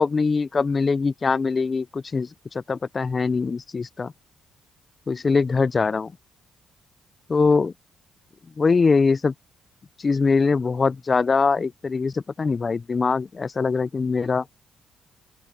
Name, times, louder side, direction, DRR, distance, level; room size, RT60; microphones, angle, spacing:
voice 1, 0.0-4.1 5.1-6.1 7.3-7.7 8.6-9.3 10.0-14.5, left 4 dB, 35° left, 0.5 m, -22 dB
open air
cardioid pair, 90°, 0 cm